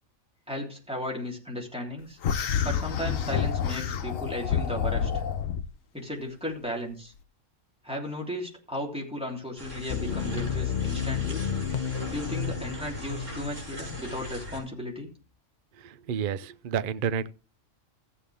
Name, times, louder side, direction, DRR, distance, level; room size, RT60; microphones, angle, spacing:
voice 1, 0.5-2.2 2.6-5.2 5.9-7.1 7.8-11.4 12.1-15.1, left 1 dB, 5° right, 3.3 m, -35 dB
sound 1, 2.2-5.7, left 7 dB, 85° left, 1.2 m, -28 dB
sound 2, 9.6-14.6, left 1 dB, 70° right, 6.3 m, -40 dB
sound 3, 9.9-14.3 14.6-14.8, left 8 dB, 45° left, 0.6 m, -32 dB
voice 2, 15.8-17.3, right 7 dB, 55° right, 0.7 m, -30 dB
14.5 x 8.3 x 3.5 m
omnidirectional pair, 1.3 m